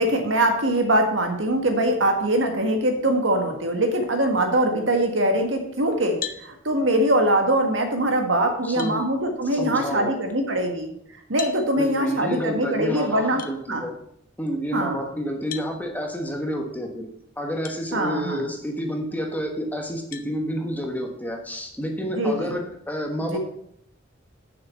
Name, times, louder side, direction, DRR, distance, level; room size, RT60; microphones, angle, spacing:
voice 1, 0.0-10.9 11.3-13.4 13.7-13.8 14.7-15.0 17.9-18.5 22.1-22.6 23.2-23.4, right 1 dB, 75° right, 4 dB, 1.8 m, -22 dB
sound 1, 6.2-6.5 8.1-8.2 8.8-9.0 11.4-11.6 13.4-13.5 15.5-15.7 17.6-17.8 18.4-18.5 20.1-20.3, left 8 dB, 45° left, 0.7 m, -35 dB
voice 2, 8.6-9.0 9.5-10.1 11.7-13.9 14.4-17.1 17.4-23.4, equal, 10° left, 2 dB, 1.3 m, -29 dB
7.2 x 6.4 x 6.8 m, 0.71 s
head